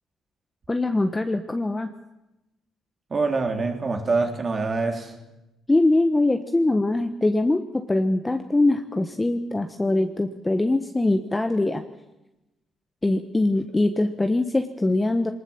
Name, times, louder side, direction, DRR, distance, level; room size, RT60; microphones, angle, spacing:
voice 1, 0.7-1.9 5.7-11.8 13.0-15.3, left 2 dB, 15° left, 6 dB, 1.2 m, -22 dB
voice 2, 3.1-5.1, right 3 dB, 40° right, 4 dB, 3.4 m, -25 dB
21.5 x 19.5 x 7.3 m, 0.97 s
cardioid pair, 90°, 0 cm